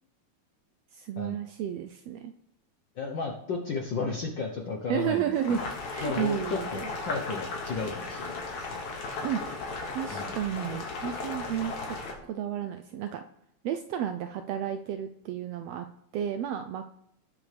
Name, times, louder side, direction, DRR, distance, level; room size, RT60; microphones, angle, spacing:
voice 1, 0.9-2.3 4.9-5.6 5.9-6.9 9.2-9.4 9.9-12.0 12.2-13.2 13.6-15.9 16.1-16.9, right 9 dB, 80° right, 8 dB, 1.5 m, -32 dB
voice 2, 2.9-5.6 6.0-8.7 10.1-10.4, left 4 dB, 65° left, 0 dB, 1.2 m, -34 dB
Boiling, 5.3-12.1, left 3 dB, 80° left, 3.4 m, -36 dB
18.5 x 7.3 x 3.4 m, 0.74 s
omnidirectional pair, 3.3 m